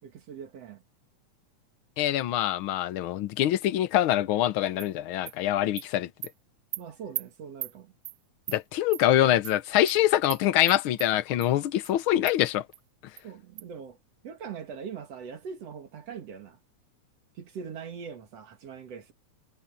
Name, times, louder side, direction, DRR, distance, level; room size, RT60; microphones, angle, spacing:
voice 1, 0.0-0.8 6.8-7.9 13.2-14.0 14.2-16.6 17.4-19.1, right 6 dB, 60° right, 2.8 m, -41 dB
voice 2, 2.0-6.1 8.5-12.6, left 13 dB, 85° left, 1.1 m, -24 dB
Animal, 4.8-4.9 5.3-5.4 5.8-5.9 6.2-6.3 6.7-6.8 7.2-7.3 7.6-7.7 8.1-8.2 8.5-8.6 8.9-9.0 9.4-9.6 9.9-10.0 10.3-10.4 10.7-11.1 11.4-11.5 11.8-11.9 12.3-12.4 12.7-12.8 13.2-13.3 13.6-13.7, right 17 dB, 85° right, 2.1 m, -36 dB
omnidirectional pair, 3.4 m